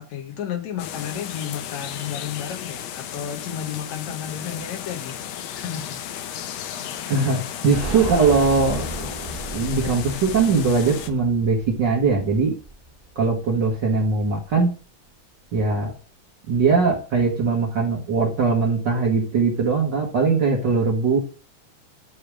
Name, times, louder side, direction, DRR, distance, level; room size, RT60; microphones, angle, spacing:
voice 1, 0.0-5.2 5.5-6.0, left 9 dB, 70° left, 1.9 m, -32 dB
sound 1, 0.8-11.1, left 10 dB, 90° left, 1.5 m, -34 dB
voice 2, 7.1-8.8 9.5-12.5 13.1-14.7 15.5-15.9 16.5-21.2, right 4 dB, 70° right, 1.0 m, -20 dB
sound 2, 7.7-13.3 13.6-13.7 14.0-14.1, right 2 dB, 25° right, 1.3 m, -34 dB
9.7 x 3.3 x 6.1 m
omnidirectional pair, 4.0 m